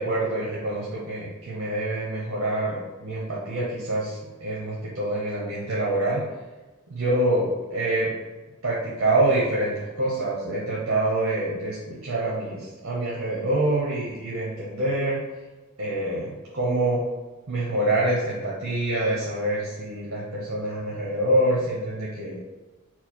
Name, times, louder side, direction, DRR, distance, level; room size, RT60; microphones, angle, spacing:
voice 1, 0.0-6.2 6.9-8.1 8.6-15.2 15.8-17.0 17.5-22.4, right 1 dB, 70° right, -5 dB, 0.9 m, -26 dB
4.5 x 2.0 x 4.4 m, 1.2 s
head